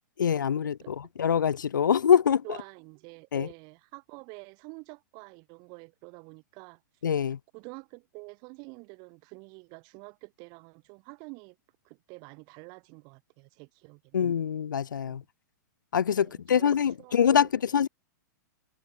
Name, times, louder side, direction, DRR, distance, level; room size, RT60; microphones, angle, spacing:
voice 1, 0.2-2.4 3.3-3.5 7.0-7.4 14.1-15.2 15.9-17.9, left 8 dB, 85° left, 3.2 m, -24 dB
voice 2, 2.4-6.8 7.5-11.6 11.8-14.2 15.0-15.3 16.1-17.5, right 32 dB, 45° right, 7.6 m, -48 dB
hypercardioid pair, 130°, 10 cm